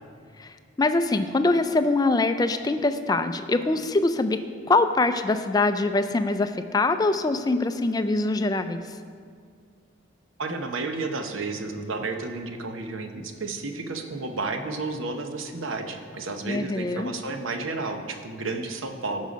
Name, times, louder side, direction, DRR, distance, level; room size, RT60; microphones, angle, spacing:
voice 1, 0.4-4.4 4.7-9.0 16.5-17.1, left 2 dB, 20° left, 9 dB, 0.3 m, -23 dB
voice 2, 10.4-19.3, right 3 dB, 75° right, 5 dB, 0.8 m, -32 dB
14.0 x 5.6 x 5.1 m, 2.2 s
head